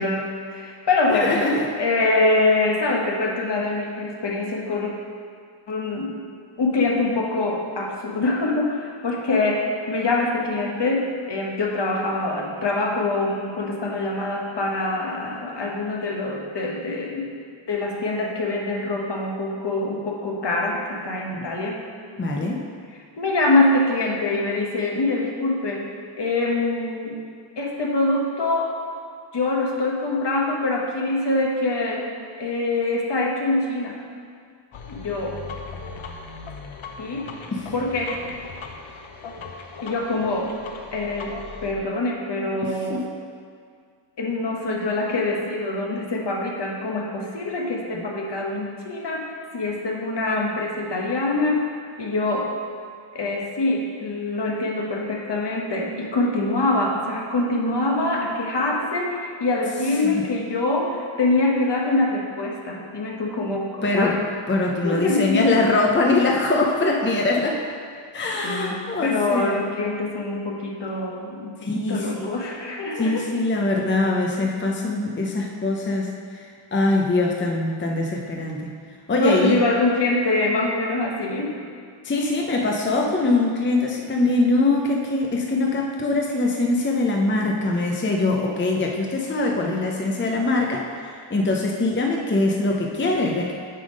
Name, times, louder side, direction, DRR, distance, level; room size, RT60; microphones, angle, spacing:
voice 1, 0.0-1.4 1.8-4.9 5.7-6.2 6.6-17.3 17.7-21.9 23.2-27.2 27.6-28.8 29.3-32.1 32.4-34.0 34.9-35.4 37.0-37.3 37.7-38.2 39.8-40.5 40.9-41.4 41.6-43.0 44.2-51.7 52.0-52.5 53.1-64.2 64.8-65.4 68.4-71.5 71.9-73.3 79.2-81.5, left 2 dB, 60° left, 0 dB, 1.0 m, -24 dB
voice 2, 1.1-1.7 21.3-21.5 22.2-22.7 37.5-37.7 42.9-43.1 60.0-60.2 63.8-64.2 64.5-67.6 68.1-69.6 71.6-72.3 73.0-78.7 79.1-79.6 82.0-93.5, left 2 dB, 25° left, 0 dB, 0.6 m, -23 dB
sound 1, 34.7-41.7, left 4 dB, 75° left, 0.7 m, -38 dB
8.7 x 3.5 x 5.2 m, 2.1 s
wide cardioid pair, 100°, 48 cm